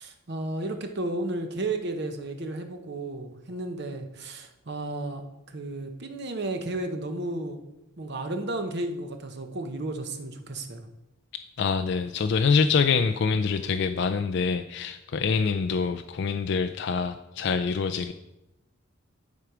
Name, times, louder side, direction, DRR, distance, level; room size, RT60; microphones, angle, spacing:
voice 1, 0.0-7.6 8.0-10.9, right 2 dB, 55° right, 6 dB, 0.9 m, -33 dB
voice 2, 11.6-18.1, left 5 dB, 55° left, 8 dB, 0.3 m, -25 dB
11.0 x 4.7 x 4.9 m, 0.93 s
head